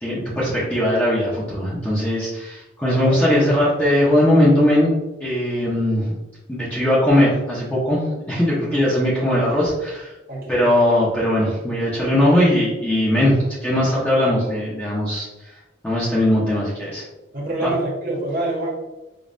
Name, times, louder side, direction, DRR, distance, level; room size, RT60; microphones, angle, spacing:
voice 1, 0.0-4.9 5.2-6.2 6.5-10.1 10.5-15.3 15.8-17.0 17.6-17.7, left 1 dB, 10° left, -8 dB, 0.7 m, -19 dB
voice 2, 10.3-10.7 17.3-18.7, right 1 dB, 50° right, -3 dB, 1.1 m, -26 dB
5.1 x 2.3 x 2.5 m, 1.1 s
head